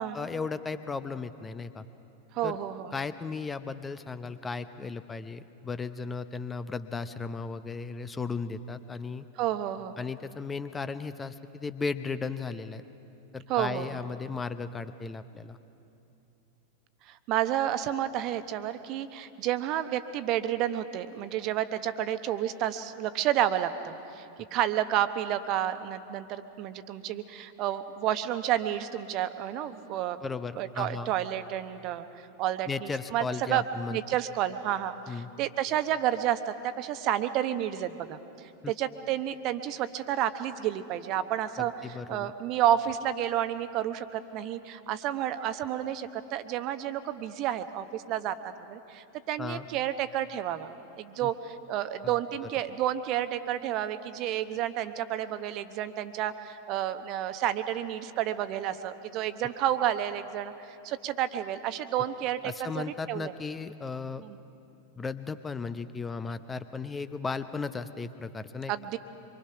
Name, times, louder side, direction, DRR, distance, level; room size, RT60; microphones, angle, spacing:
voice 1, 0.1-1.8 2.4-2.6 2.9-9.3 10.0-12.8 13.3-15.6 30.2-31.1 32.7-34.0 35.1-35.3 38.6-38.7 41.6-42.3 49.4-49.7 51.2-51.3 52.0-52.1 62.4-64.2 64.9-68.7, left 4 dB, 15° left, 12 dB, 0.8 m, -35 dB
voice 2, 2.3-2.9 9.4-9.9 13.5-14.0 17.1-24.2 24.5-30.2 30.6-32.1 32.4-33.6 33.9-38.2 38.7-41.7 42.1-48.3 48.7-50.7 51.0-63.3 64.2-64.4 68.7-69.0, right 11 dB, 40° right, 11 dB, 1.0 m, -30 dB
25.5 x 23.5 x 5.8 m, 2.8 s
figure-of-eight pair, 90°, 0 cm